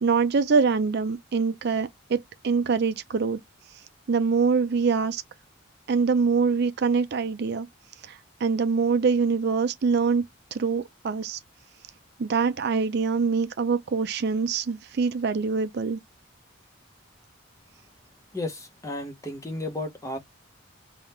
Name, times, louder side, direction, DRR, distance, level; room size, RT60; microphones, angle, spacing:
voice 1, 0.0-3.4 4.1-5.2 5.9-7.7 8.0-10.2 10.5-11.4 12.2-16.0, right 5 dB, 50° right, 0.4 m, -24 dB
voice 2, 18.3-20.2, left 1 dB, 15° left, 0.8 m, -33 dB
3.5 x 2.3 x 4.2 m
head